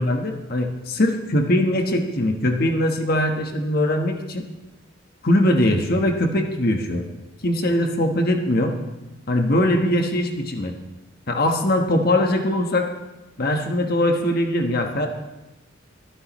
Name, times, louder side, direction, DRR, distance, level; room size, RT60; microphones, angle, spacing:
voice 1, 0.0-4.4 5.2-7.0 7.4-8.7 9.3-10.7 11.3-12.9 13.4-15.1, left 1 dB, 50° left, 4 dB, 1.2 m, -21 dB
23.5 x 10.0 x 3.1 m, 1.0 s
head